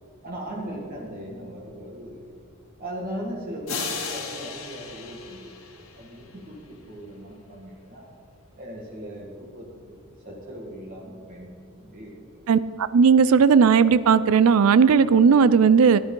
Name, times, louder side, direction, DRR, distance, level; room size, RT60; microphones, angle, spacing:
voice 1, 0.2-2.2 2.8-8.1 8.6-10.0 10.3-11.5 11.8-12.1, equal, 40° right, -3 dB, 1.8 m, -38 dB
sound 1, 3.7-6.3, left 5 dB, 75° left, 2.0 m, -35 dB
voice 2, 12.5-16.0, right 6 dB, 75° right, 15 dB, 0.4 m, -16 dB
15.0 x 11.5 x 3.8 m, 2.6 s
head